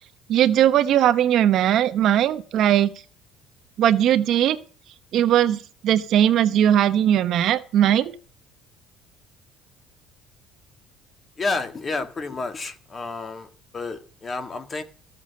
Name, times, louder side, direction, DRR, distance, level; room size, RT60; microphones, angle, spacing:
voice 1, 0.3-2.9 3.8-4.6 5.1-8.1, right 11 dB, 50° right, 1.0 m, -19 dB
voice 2, 11.4-14.8, left 3 dB, 25° left, 1.8 m, -30 dB
14.5 x 7.1 x 6.6 m
cardioid pair, 150°, 0 cm